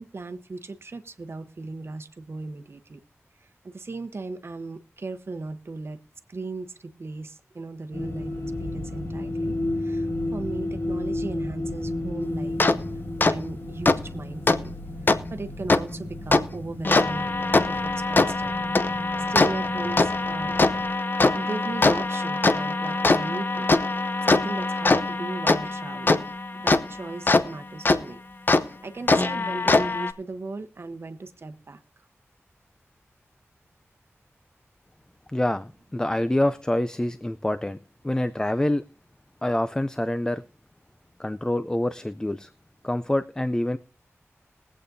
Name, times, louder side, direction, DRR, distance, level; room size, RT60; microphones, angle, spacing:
voice 1, 0.0-3.0 3.4-6.0 6.3-12.6 13.2-14.7 15.0-17.3 17.7-18.7 19.3-20.6 21.3-23.7 23.9-28.2 28.6-31.8, right 3 dB, 55° right, 9 dB, 1.0 m, -37 dB
sound 1, 7.9-20.9, left 1 dB, 70° left, 2.1 m, -33 dB
sound 2, 12.6-12.7 13.2-13.3 13.9-14.0 14.5-14.6 15.1-15.2 15.7-15.8 16.3-16.4 16.8-27.4 27.9-28.0 28.5-28.6 29.1-30.1, left 3 dB, 45° left, 0.7 m, -22 dB
voice 2, 35.3-37.8 38.0-38.8 39.4-40.4 41.2-42.5 42.8-43.8, left 1 dB, 15° left, 11 dB, 0.4 m, -26 dB
22.0 x 8.4 x 2.7 m, 0.35 s
wide cardioid pair, 100°, 5 cm